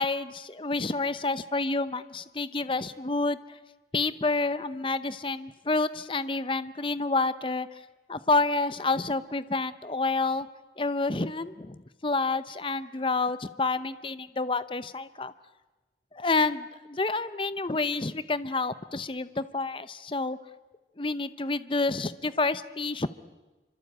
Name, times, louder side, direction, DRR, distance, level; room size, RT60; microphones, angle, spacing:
voice 1, 0.0-3.6 3.9-7.7 8.1-10.5 10.8-15.3 16.1-20.4 21.0-23.1, left 3 dB, 30° left, 14 dB, 0.8 m, -29 dB
27.0 x 25.0 x 8.7 m, 1.2 s
head